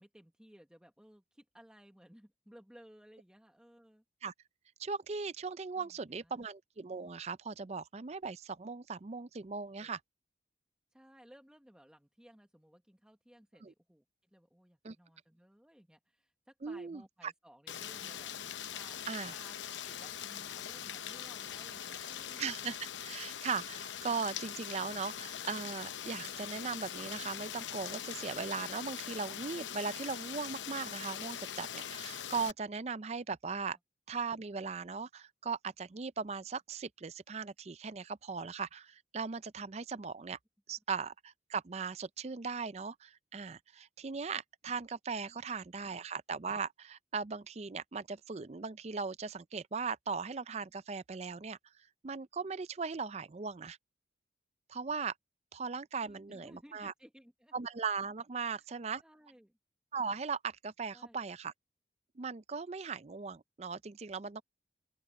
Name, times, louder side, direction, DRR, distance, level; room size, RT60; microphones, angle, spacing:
voice 1, 0.0-4.0 5.7-6.4 9.8-9.9 10.9-14.0 14.3-18.3 18.7-19.0 19.3-19.6 19.8-22.5 45.3-45.6 46.0-46.1 56.0-57.5 58.4-58.7 59.0-59.6 60.9-61.3, equal, 5° right, 1.1 m, -59 dB
voice 2, 4.8-10.0 13.6-13.7 14.8-15.0 16.6-17.3 19.1-19.3 22.4-33.8 34.1-40.4 40.7-51.6 52.0-53.8 54.7-55.1 55.5-56.9 57.5-59.0 59.9-61.5 62.2-64.4, right 5 dB, 35° right, 0.5 m, -38 dB
Rain, 17.7-32.5, left 9 dB, 80° left, 0.8 m, -42 dB
open air
head